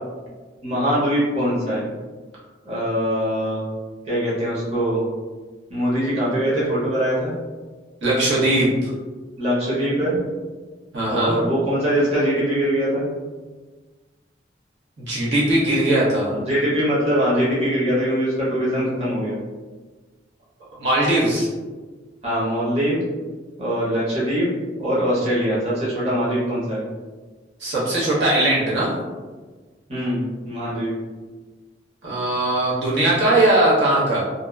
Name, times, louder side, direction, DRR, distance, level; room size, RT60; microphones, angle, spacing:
voice 1, 0.6-1.9 2.7-3.6 4.1-5.0 5.7-7.3 9.4-10.2 11.1-13.0 16.3-19.4 22.2-23.0 23.6-24.5 24.8-26.8 29.9-31.0, equal, 35° right, -8 dB, 0.8 m, -22 dB
voice 2, 8.0-8.9 10.9-11.4 15.0-16.3 20.8-21.5 27.6-28.9 32.0-34.2, right 1 dB, 90° right, -7 dB, 0.9 m, -19 dB
2.7 x 2.1 x 2.3 m, 1.3 s
head